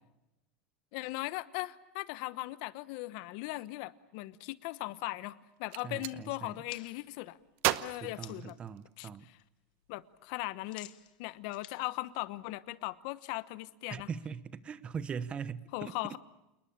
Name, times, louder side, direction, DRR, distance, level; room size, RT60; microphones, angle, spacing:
voice 1, 0.9-7.4 7.8-8.5 9.0-9.1 9.9-10.9 11.2-14.1 15.7-16.2, left 19 dB, 60° left, 1.1 m, -39 dB
Gunshot gunfire, 5.5-6.2 7.6-9.1, right 16 dB, 50° right, 1.0 m, -34 dB
voice 2, 5.8-6.6 8.0-9.3 13.9-15.9, right 6 dB, 25° right, 1.0 m, -41 dB
sound 1, 6.7-8.6 9.0-9.4 9.7-13.0, left 14 dB, 90° left, 1.4 m, -54 dB
28.5 x 20.5 x 8.7 m
supercardioid pair, 145°, 5 cm